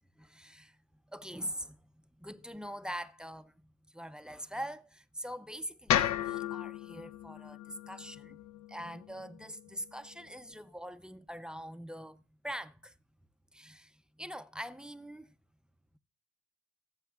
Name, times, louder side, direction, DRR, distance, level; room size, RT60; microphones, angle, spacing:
voice 1, 0.2-0.8 1.1-1.8 2.2-3.5 3.9-8.4 8.7-12.9 13.5-15.3, equal, 5° right, 0.5 m, -43 dB
sound 1, 5.9-10.1, left 10 dB, 65° left, 0.6 m, -34 dB
21.0 x 7.3 x 2.3 m
cardioid pair, 90°, 30 cm